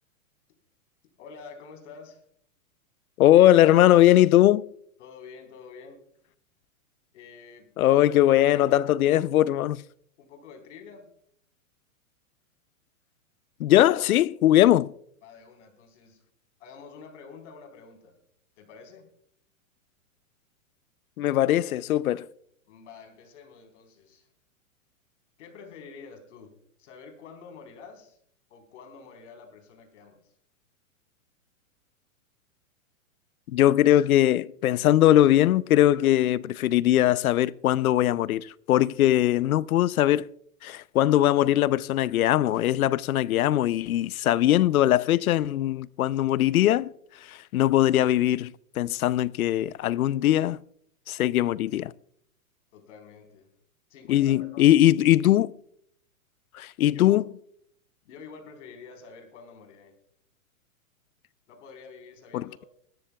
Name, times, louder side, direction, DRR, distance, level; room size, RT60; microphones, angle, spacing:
voice 1, 1.2-2.2 5.0-6.0 7.1-8.0 8.4-9.3 10.2-11.1 15.2-16.2 16.6-18.1 18.6-19.1 22.7-24.3 25.4-26.5 26.8-28.2 28.5-30.3 52.7-53.5 53.9-54.6 56.9-57.2 58.0-59.9 61.5-62.7, left 5 dB, 60° left, 4.1 m, -48 dB
voice 2, 3.2-4.6 7.8-9.8 13.6-14.9 21.2-22.3 33.5-40.3 40.6-46.9 47.2-50.6 51.1-51.9 54.1-55.5 56.5-57.2 62.3-62.6, left 13 dB, 80° left, 0.6 m, -21 dB
21.0 x 13.5 x 2.3 m
hypercardioid pair, 150°, 42 cm